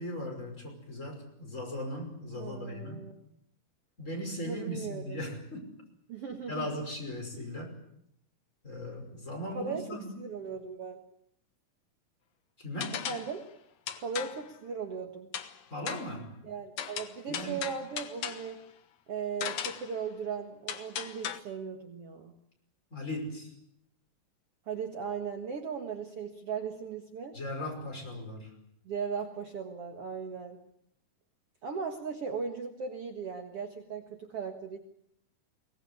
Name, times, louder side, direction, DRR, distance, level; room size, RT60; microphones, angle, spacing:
voice 1, 0.0-3.0 4.0-5.6 6.5-7.7 8.6-10.1 12.6-13.0 15.7-16.3 17.3-17.6 22.9-23.5 27.3-28.5, left 1 dB, 20° left, 1 dB, 5.9 m, -38 dB
voice 2, 2.4-3.1 4.5-5.2 6.1-6.7 7.3-7.5 9.5-9.9 10.2-11.0 12.9-13.5 14.0-15.3 16.4-18.6 19.1-22.3 24.7-27.4 28.9-30.6 31.6-34.8, right 6 dB, 50° right, 4 dB, 2.3 m, -37 dB
sound 1, 12.8-13.4 13.9-14.5 15.3-15.6 15.9-16.2 16.8-18.5 19.4-19.9 20.7-21.4, left 9 dB, 60° left, 2.2 m, -37 dB
23.5 x 18.5 x 9.8 m, 0.72 s
omnidirectional pair, 3.7 m